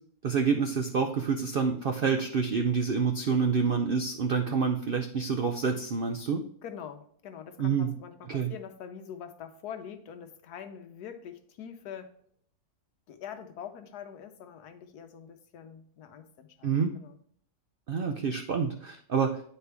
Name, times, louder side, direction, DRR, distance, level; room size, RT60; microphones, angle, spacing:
voice 1, 0.2-6.4 7.6-7.9 8.3-8.5 16.6-16.9 17.9-19.5, right 5 dB, 85° right, 5 dB, 0.4 m, -27 dB
voice 2, 6.6-12.1 13.1-17.2, left 8 dB, 80° left, 7 dB, 1.3 m, -44 dB
9.4 x 4.3 x 3.3 m, 0.62 s
omnidirectional pair, 1.7 m